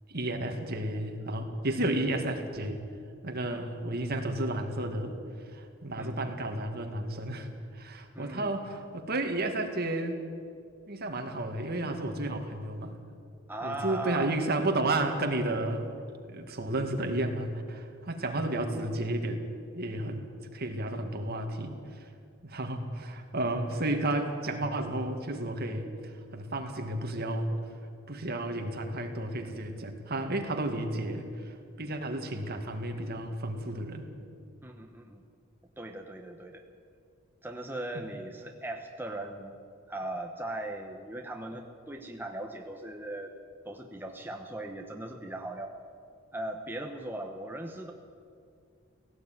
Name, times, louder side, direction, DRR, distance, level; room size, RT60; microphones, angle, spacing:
voice 1, 0.1-2.8 3.2-5.2 5.5-7.5 7.7-10.2 10.9-13.0 13.6-15.9 16.3-19.5 19.7-20.3 20.5-21.8 22.4-25.9 26.3-27.5 28.1-34.1, right 1 dB, 50° right, 4 dB, 2.2 m, -32 dB
voice 2, 6.0-6.3 8.1-8.6 13.5-14.4 34.6-35.2 35.8-36.6 37.4-39.6 39.9-43.3 43.6-45.8 46.3-47.9, right 1 dB, 10° right, 3 dB, 1.0 m, -39 dB
17.5 x 16.0 x 9.3 m, 2.3 s
head